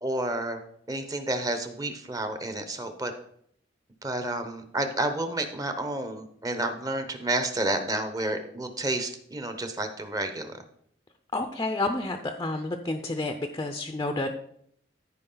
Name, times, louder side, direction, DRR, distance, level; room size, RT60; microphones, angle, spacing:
voice 1, 0.0-0.6 0.9-3.1 4.0-10.5, right 1 dB, 20° right, 7 dB, 0.9 m, -30 dB
voice 2, 11.3-14.3, left 2 dB, 20° left, 6 dB, 0.5 m, -30 dB
14.0 x 4.9 x 3.9 m, 0.69 s
head